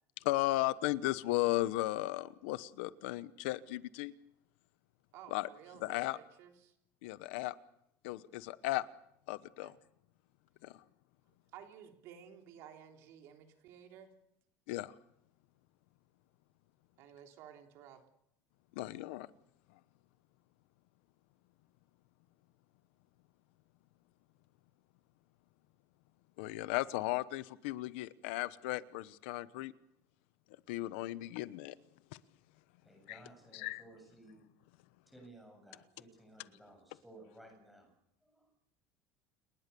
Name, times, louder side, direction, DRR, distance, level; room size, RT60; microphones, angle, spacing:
voice 1, 0.2-4.1 5.3-5.5 5.8-6.2 7.0-7.5 8.0-8.9 9.3-9.7 10.6-10.8 14.7-14.9 18.7-19.3 26.4-29.7 30.7-31.8 32.1-32.2 33.1-33.2 33.5-33.8, left 17 dB, 85° left, 16 dB, 1.0 m, -35 dB
voice 2, 5.1-6.7 9.6-9.7 11.5-14.1 17.0-18.0, right 9 dB, 50° right, 4 dB, 3.3 m, -54 dB
voice 3, 32.8-34.4 35.1-37.9 38.2-38.5, right 1 dB, ahead, 2 dB, 7.7 m, -57 dB
29.5 x 19.0 x 7.0 m, 0.79 s
cardioid pair, 175°, 6 cm